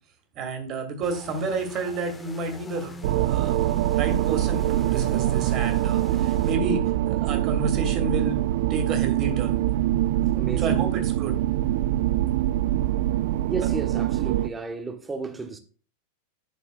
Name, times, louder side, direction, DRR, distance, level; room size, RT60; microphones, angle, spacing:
voice 1, 0.4-3.7 4.0-8.4 8.7-9.6 10.6-11.4, right 3 dB, 35° right, 2.5 m, -30 dB
sound 1, 1.0-6.6, left 2 dB, 10° left, 1.1 m, -42 dB
sound 2, 3.0-14.5, right 14 dB, 50° right, 0.4 m, -24 dB
voice 2, 10.3-10.8 13.5-15.6, right 4 dB, 15° right, 1.3 m, -33 dB
11.5 x 6.5 x 2.5 m
figure-of-eight pair, 90°, 0 cm